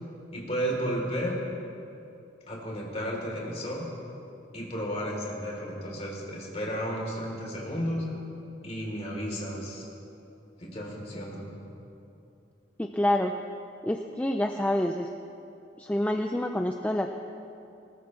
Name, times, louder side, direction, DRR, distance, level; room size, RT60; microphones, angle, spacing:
voice 1, 0.3-1.4 2.5-3.9 4.5-8.0 8.6-9.9 10.6-11.5, equal, 35° left, -2 dB, 3.3 m, -33 dB
voice 2, 12.8-13.4 13.8-15.1 15.8-17.1, left 1 dB, 10° left, 4 dB, 0.4 m, -27 dB
20.0 x 19.0 x 3.2 m, 2.7 s
head